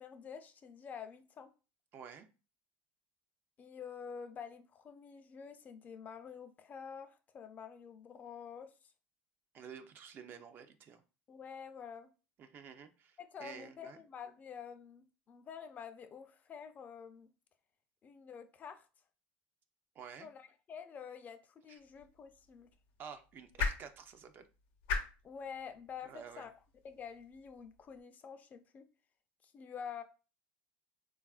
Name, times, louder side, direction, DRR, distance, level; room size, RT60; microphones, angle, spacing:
voice 1, 0.0-1.5 3.6-8.7 11.3-12.1 13.2-17.3 18.0-18.9 20.2-22.7 25.2-26.5 26.8-28.9 29.4-30.0, left 7 dB, 30° left, 0.4 m, -48 dB
voice 2, 1.9-2.3 9.5-11.0 12.4-14.0 20.0-20.3 21.7-21.8 23.0-24.5 26.0-26.5, right 7 dB, 40° right, 0.4 m, -50 dB
sound 1, 21.8-28.0, left 4 dB, 80° left, 0.7 m, -42 dB
3.4 x 2.3 x 2.3 m
supercardioid pair, 120°, 5 cm